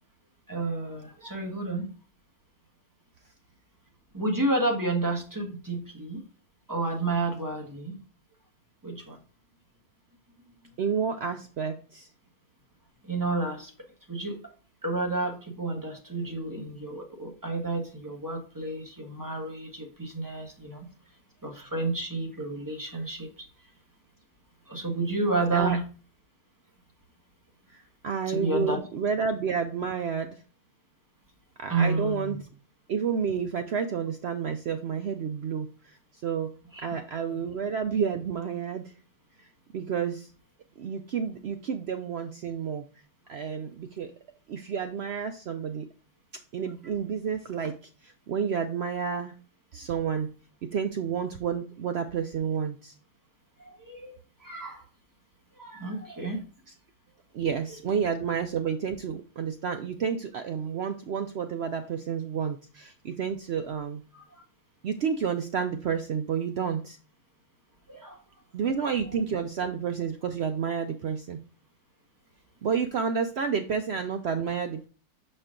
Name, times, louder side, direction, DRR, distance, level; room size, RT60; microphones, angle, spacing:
voice 1, 0.5-1.9 4.1-6.2 6.7-8.0 8.8-9.2 13.0-13.7 14.1-14.5 14.8-20.9 21.4-23.5 24.7-25.8 28.3-28.8 31.7-32.4 36.7-36.9 37.3-37.4 53.6-54.8 55.6-56.4 64.3-64.4 67.9-68.2, right 2 dB, 15° right, 1 dB, 1.3 m, -30 dB
voice 2, 10.8-12.1 25.5-25.8 28.0-30.4 31.6-32.4 32.9-36.5 36.8-38.9 39.7-40.3 40.8-42.8 43.3-44.1 44.5-45.9 46.5-47.8 48.0-49.3 49.7-50.3 50.6-52.9 57.3-64.0 64.8-67.0 68.5-71.4 72.6-74.9, right 6 dB, 70° right, 8 dB, 0.6 m, -30 dB
6.7 x 4.4 x 3.7 m, 0.37 s
omnidirectional pair, 1.6 m